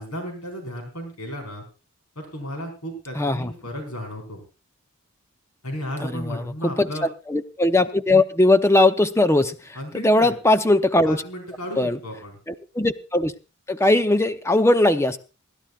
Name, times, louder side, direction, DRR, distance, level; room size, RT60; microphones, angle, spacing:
voice 1, 0.0-1.6 2.2-4.4 5.6-7.1 9.7-10.3 11.1-12.4, equal, 80° left, 2 dB, 4.7 m, -34 dB
voice 2, 3.1-3.5 6.0-6.9 7.3-11.2 11.8-12.0 12.5-13.3 13.7-15.2, left 2 dB, 10° left, 10 dB, 0.7 m, -20 dB
27.5 x 11.5 x 2.4 m, 0.32 s
head